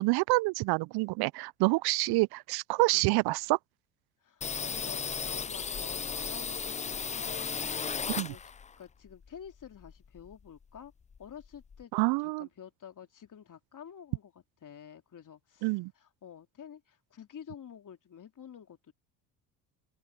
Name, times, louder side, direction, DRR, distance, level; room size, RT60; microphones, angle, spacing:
voice 1, 0.0-3.6 8.1-8.3 11.9-12.5 15.6-15.9, right 23 dB, 60° right, 0.5 m, -27 dB
voice 2, 4.2-8.5 8.8-10.9 11.2-11.9 12.2-14.3 14.6-18.9, left 8 dB, 40° left, 3.4 m, -49 dB
sound 1, 4.4-8.8 9.1-10.5 10.8-10.9 11.1-11.8, left 6 dB, 15° left, 0.5 m, -36 dB
hypercardioid pair, 65°, 45 cm